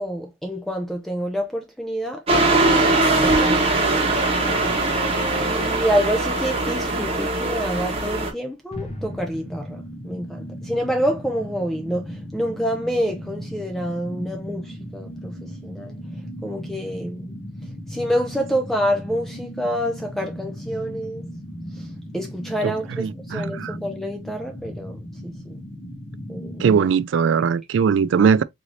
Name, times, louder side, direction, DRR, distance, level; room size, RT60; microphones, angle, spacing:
voice 1, 0.0-2.2 2.5-2.8 3.2-4.7 5.4-15.9 16.4-17.3 17.9-21.2 21.7-21.9 22.1-25.6 26.3-26.8, equal, ahead, 0.5 m, -27 dB
sound 1, 2.3-8.3, right 2 dB, 30° right, 1.0 m, -21 dB
sound 2, 8.7-26.9, equal, 30° left, 0.8 m, -36 dB
voice 2, 23.0-23.7 26.6-28.4, right 6 dB, 70° right, 0.3 m, -20 dB
3.8 x 2.7 x 3.1 m
head